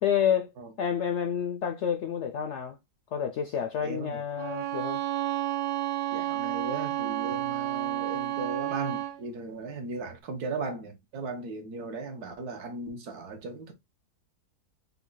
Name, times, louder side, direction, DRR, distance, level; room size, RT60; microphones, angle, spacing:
voice 1, 0.0-0.5 0.8-2.8 3.1-5.0, left 8 dB, 70° left, 0.6 m, -29 dB
voice 2, 3.8-4.2 6.1-13.7, right 3 dB, 70° right, 1.6 m, -37 dB
Bowed string instrument, 4.4-9.2, right 14 dB, 85° right, 1.4 m, -31 dB
5.7 x 2.3 x 3.8 m
omnidirectional pair, 1.7 m